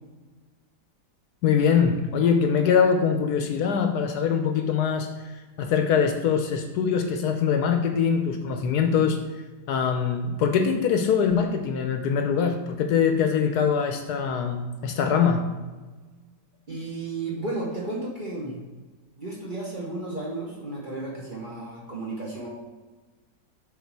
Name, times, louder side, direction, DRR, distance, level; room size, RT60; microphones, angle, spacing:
voice 1, 1.4-5.1 5.6-9.2 9.7-15.4, left 6 dB, 70° left, 5 dB, 1.1 m, -23 dB
voice 2, 16.7-18.6 19.2-22.5, right 2 dB, 35° right, -3 dB, 1.0 m, -33 dB
7.2 x 3.9 x 4.6 m, 1.3 s
omnidirectional pair, 1.9 m